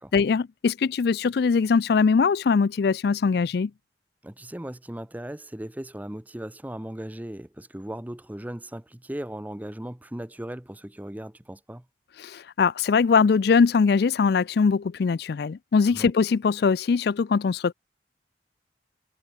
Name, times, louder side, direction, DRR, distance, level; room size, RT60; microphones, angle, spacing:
voice 1, 0.1-3.7 12.2-17.7, left 5 dB, 60° left, 0.4 m, -21 dB
voice 2, 4.2-11.9 15.9-16.1, right 1 dB, 10° right, 0.6 m, -37 dB
head